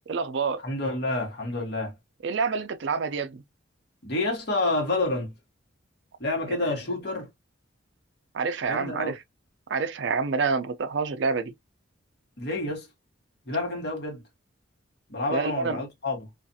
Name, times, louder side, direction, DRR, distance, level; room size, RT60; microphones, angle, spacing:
voice 1, 0.0-0.6 2.2-3.4 8.3-9.2 9.7-11.5 15.3-15.8, right 4 dB, 65° right, 0.4 m, -27 dB
voice 2, 0.6-1.9 4.0-5.3 6.2-7.3 8.7-9.1 12.4-12.9 13.5-14.2 15.1-16.2, left 2 dB, 60° left, 1.2 m, -28 dB
2.4 x 2.3 x 2.6 m
head